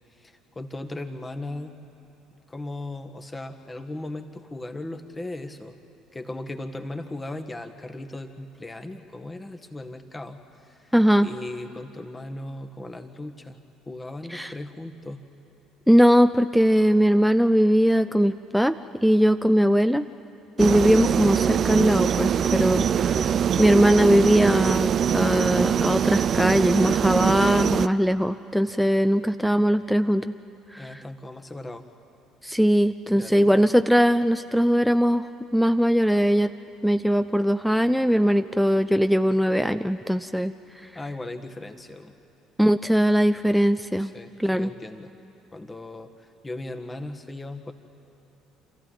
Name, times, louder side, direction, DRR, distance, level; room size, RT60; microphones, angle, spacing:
voice 1, 0.1-1.8 2.5-5.8 6.1-10.9 11.2-13.6 13.9-15.3 30.8-31.8 33.2-33.6 40.9-42.2 44.0-45.1 45.5-47.7, left 2 dB, 20° left, 6 dB, 1.8 m, -37 dB
voice 2, 10.9-11.3 14.3-14.5 15.9-18.8 19.0-20.1 20.6-23.2 23.6-30.3 30.7-31.0 32.4-35.3 35.5-36.5 36.8-40.5 42.6-44.1 44.4-44.7, equal, ahead, 11 dB, 0.6 m, -20 dB
sound 1, 20.6-27.9, right 8 dB, 45° right, 0.5 m, -23 dB
28.0 x 14.0 x 9.3 m, 2.9 s
figure-of-eight pair, 55°, 0 cm